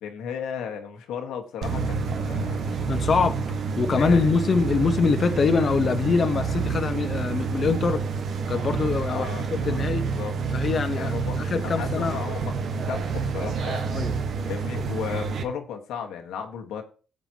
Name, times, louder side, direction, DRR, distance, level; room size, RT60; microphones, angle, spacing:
voice 1, 0.0-2.9 3.9-4.4 9.1-10.3 10.9-11.4 11.6-12.5 12.8-13.9 14.4-16.8, left 7 dB, 85° left, 3 dB, 1.5 m, -35 dB
sound 1, 1.6-15.4, right 5 dB, 65° right, 1.6 m, -28 dB
voice 2, 2.9-3.4 3.8-8.0 8.5-9.3 9.6-10.0 10.5-12.2 13.9-14.2, left 5 dB, 45° left, 6 dB, 1.1 m, -24 dB
17.5 x 7.7 x 3.0 m, 0.37 s
cardioid pair, 90°, 0 cm